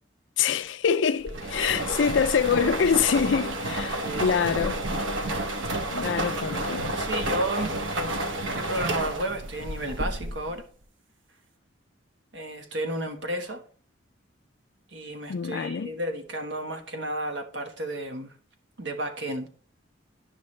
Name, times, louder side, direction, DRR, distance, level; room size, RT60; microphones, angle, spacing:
voice 1, 0.4-4.8 5.9-7.0 15.3-15.9, left 6 dB, 70° left, 0.4 m, -25 dB
sound 1, 1.3-10.6, right 1 dB, 80° right, 0.9 m, -30 dB
voice 2, 1.6-2.0 4.0-4.4 6.1-7.8 8.5-10.7 12.3-13.6 14.9-18.3 18.8-19.5, right 1 dB, 65° right, 1.3 m, -33 dB
10.0 x 5.7 x 3.2 m
head